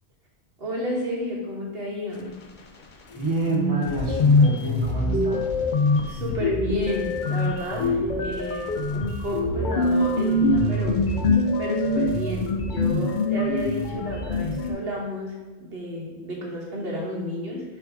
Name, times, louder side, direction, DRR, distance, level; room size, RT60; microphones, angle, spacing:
voice 1, 0.6-2.3 6.0-11.0 11.6-17.6, left 1 dB, 60° right, -2 dB, 1.5 m, -31 dB
sound 1, 3.1-3.2 3.5-14.7, left 2 dB, 50° left, 0.8 m, -24 dB
voice 2, 3.1-5.5, right 3 dB, 30° right, -2 dB, 1.0 m, -28 dB
6.8 x 3.4 x 4.8 m, 1.2 s
omnidirectional pair, 1.1 m